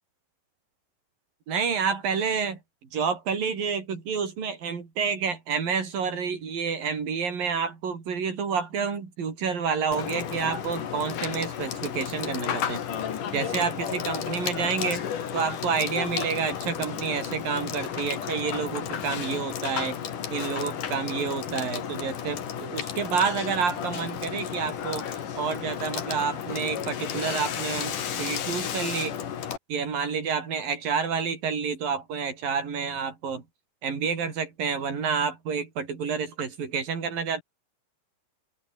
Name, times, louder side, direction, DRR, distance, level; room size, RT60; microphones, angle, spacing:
voice 1, 1.5-2.6 2.9-12.8 13.3-15.1 15.3-20.0 20.3-25.1 25.4-29.2 29.7-33.4 33.8-37.4, right 6 dB, 80° right, 6.1 m, -29 dB
Water / Water tap faucet / Sink (filling or washing), 9.9-29.6, left 8 dB, 70° left, 3.8 m, -33 dB
open air
omnidirectional pair, 4.0 m